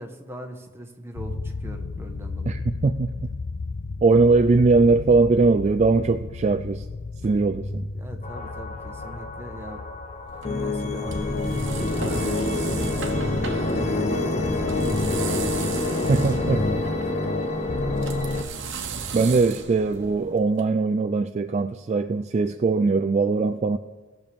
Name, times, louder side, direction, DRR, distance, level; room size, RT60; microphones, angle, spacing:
voice 1, 0.0-2.6 7.9-9.8 10.5-18.4, right 1 dB, 10° right, 1.2 m, -41 dB
sound 1, 1.1-13.4, left 3 dB, 75° left, 0.5 m, -35 dB
voice 2, 2.5-3.1 4.0-6.8 7.2-7.9 16.1-16.6 19.1-23.8, right 3 dB, 35° right, 0.3 m, -20 dB
sound 2, 8.2-18.4, left 2 dB, 35° left, 0.8 m, -26 dB
sound 3, 10.3-20.6, right 5 dB, 65° right, 1.1 m, -37 dB
18.5 x 6.8 x 3.5 m
head